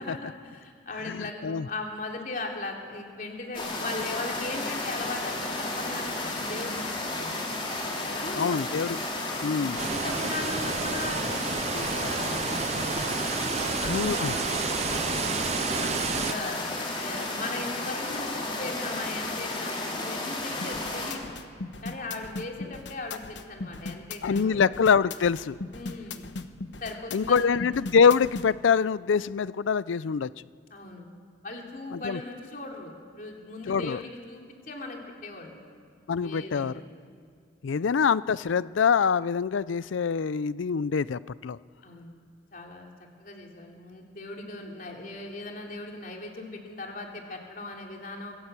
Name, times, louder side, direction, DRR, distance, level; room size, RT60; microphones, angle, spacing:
voice 1, 0.0-7.5 8.1-8.6 9.8-13.1 13.5-16.6 17.0-21.3 21.8-24.6 25.7-26.3 26.8-27.6 30.7-31.1 31.4-35.6 36.2-37.0 37.8-37.9 41.8-42.1 42.5-42.9 43.2-48.3, left 2 dB, 45° left, 1 dB, 3.4 m, -38 dB
voice 2, 1.1-1.7 8.4-9.0 9.4-9.8 13.9-14.3 24.2-25.6 27.1-30.3 31.9-32.2 33.7-34.0 36.1-36.7 37.6-41.6, left 6 dB, 90° left, 18 dB, 0.4 m, -25 dB
sound 1, 3.5-21.1, left 2 dB, 25° left, 4.2 m, -33 dB
sound 2, 9.8-16.3, right 5 dB, 35° right, 0.5 m, -31 dB
sound 3, 20.6-28.5, left 3 dB, 70° left, 1.1 m, -38 dB
25.0 x 15.0 x 8.3 m, 2.2 s
head